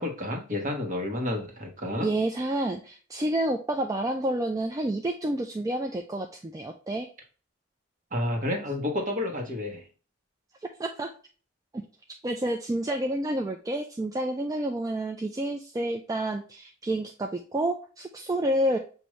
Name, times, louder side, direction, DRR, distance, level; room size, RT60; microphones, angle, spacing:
voice 1, 0.0-2.1 8.1-9.9, left 1 dB, 40° right, 2 dB, 1.2 m, -30 dB
voice 2, 2.0-7.1 10.8-11.1 12.2-18.8, right 1 dB, 20° right, 3 dB, 0.3 m, -29 dB
6.2 x 2.6 x 3.1 m, 0.39 s
head